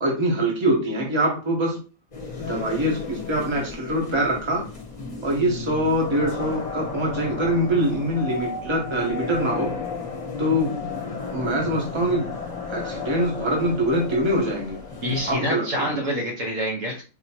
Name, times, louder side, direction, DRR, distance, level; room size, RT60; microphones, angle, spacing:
voice 1, 0.0-1.8 2.5-4.7 5.2-9.7 10.4-12.3 12.7-14.8 15.3-15.9, right 1 dB, 20° right, -1 dB, 1.1 m, -24 dB
sound 1, 2.1-15.3, left 4 dB, 35° left, 1.0 m, -34 dB
sound 2, 8.1-11.4 12.8-12.9, left 5 dB, 70° left, 1.0 m, -36 dB
voice 2, 15.0-17.0, equal, 65° right, -1 dB, 1.5 m, -26 dB
4.3 x 2.9 x 2.9 m, 0.33 s
omnidirectional pair, 1.5 m